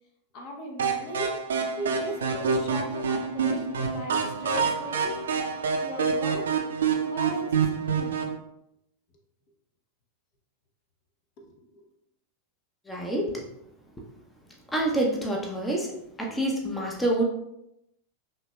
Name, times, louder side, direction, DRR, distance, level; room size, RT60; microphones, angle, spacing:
voice 1, 0.3-1.3 1.8-6.6 7.0-8.2 11.4-11.9, left 1 dB, 40° left, 1 dB, 0.8 m, -39 dB
sound 1, 0.8-8.4, right 5 dB, 65° right, 0.5 m, -27 dB
voice 2, 12.9-13.5 14.7-15.9 16.2-17.2, right 1 dB, 10° left, -1 dB, 0.7 m, -27 dB
5.6 x 2.9 x 2.2 m, 0.82 s
figure-of-eight pair, 90°, 0 cm